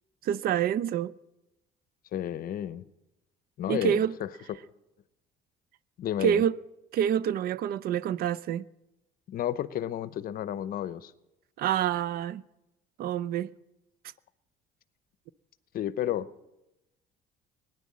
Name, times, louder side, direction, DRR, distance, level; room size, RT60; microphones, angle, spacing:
voice 1, 0.2-1.1 3.7-4.1 6.2-6.6 6.9-8.7 11.6-12.4 13.0-13.5, right 10 dB, 65° right, 0.5 m, -27 dB
voice 2, 2.1-2.9 3.6-4.6 6.0-6.4 9.3-11.1 15.7-16.3, left 11 dB, 60° left, 0.7 m, -32 dB
18.5 x 10.5 x 7.4 m
cardioid pair, 110°, 17 cm